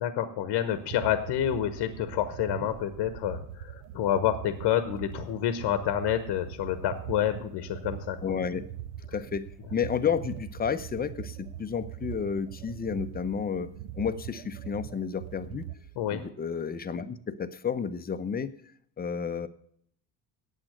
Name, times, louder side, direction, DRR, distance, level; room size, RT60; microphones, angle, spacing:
voice 1, 0.0-8.2 16.0-16.2, left 10 dB, 55° left, 11 dB, 1.0 m, -28 dB
sound 1, 0.6-16.3, right 10 dB, 60° right, 0.8 m, -42 dB
voice 2, 8.2-8.6 9.1-15.7 16.1-18.5 19.0-19.5, left 6 dB, 20° left, 12 dB, 0.7 m, -31 dB
8.8 x 7.4 x 7.7 m, 0.67 s
hypercardioid pair, 65°, 50 cm